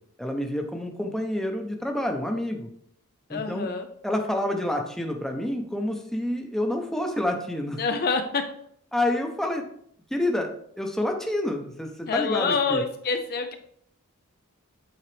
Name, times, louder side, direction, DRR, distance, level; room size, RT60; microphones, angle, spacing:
voice 1, 0.2-2.7 3.3-3.7 4.0-7.8 8.9-9.6 10.1-10.5 10.8-12.8, left 1 dB, ahead, 3 dB, 0.8 m, -28 dB
voice 2, 3.3-3.9 7.8-8.4 12.1-13.6, left 4 dB, 45° left, 6 dB, 0.5 m, -26 dB
8.6 x 4.0 x 3.3 m, 0.67 s
head